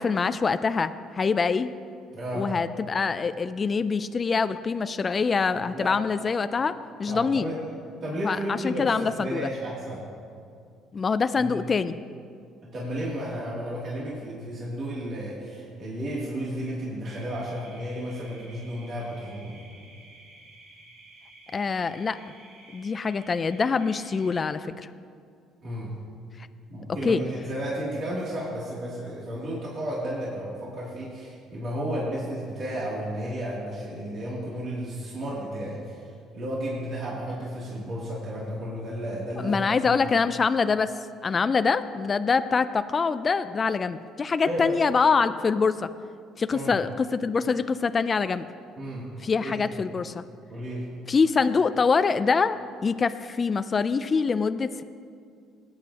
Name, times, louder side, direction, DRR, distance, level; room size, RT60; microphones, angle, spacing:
voice 1, 0.0-1.7 2.4-6.7 7.0-7.5 8.2-9.5 10.9-11.9 21.5-22.2 22.7-24.9 27.0-27.2 39.4-40.9 41.2-45.9 46.4-48.5 49.2-50.2 51.1-52.6 52.8-54.8, left 5 dB, 35° left, 12 dB, 0.4 m, -24 dB
voice 2, 2.1-2.5 5.5-5.9 7.1-7.6 8.0-10.0 11.4-11.6 12.6-19.6 25.6-26.0 26.7-40.0 44.4-44.8 46.5-46.8 48.8-49.1 49.4-49.8 50.5-51.0, equal, 50° right, -6 dB, 2.7 m, -33 dB
sound 1, 17.0-24.4, right 2 dB, 80° right, 2.3 m, -52 dB
18.5 x 8.9 x 2.9 m, 2.3 s
supercardioid pair, 80°, 0 cm